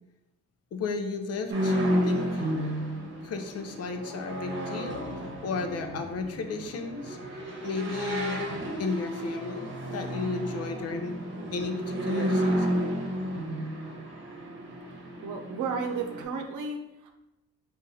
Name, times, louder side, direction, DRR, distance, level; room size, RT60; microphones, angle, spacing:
voice 1, 0.7-2.5 3.2-5.1 5.4-7.2 7.6-8.5 8.8-11.2 11.5-12.9, left 4 dB, 55° left, 6 dB, 0.6 m, -34 dB
sound 1, 1.5-16.2, equal, 40° right, 1.0 m, -32 dB
voice 2, 15.2-17.1, right 5 dB, 80° right, 4 dB, 0.7 m, -33 dB
3.9 x 2.5 x 4.1 m, 0.93 s
cardioid pair, 90°, 30 cm